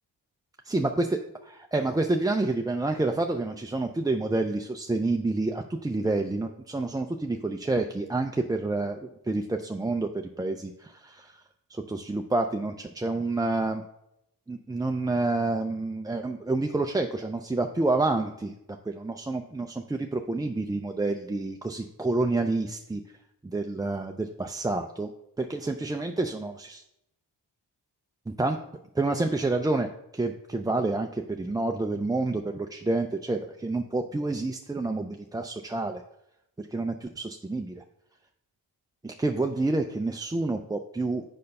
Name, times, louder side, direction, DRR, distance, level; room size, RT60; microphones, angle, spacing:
voice 1, 0.7-11.4 11.7-13.8 14.5-18.6 18.9-23.0 23.4-25.1 25.4-26.8 28.3-28.6 28.9-29.9 30.1-36.0 36.6-37.8 39.0-41.2, right 2 dB, 10° right, 4 dB, 0.4 m, -28 dB
6.6 x 5.4 x 5.3 m, 0.82 s
cardioid pair, 85°, 43 cm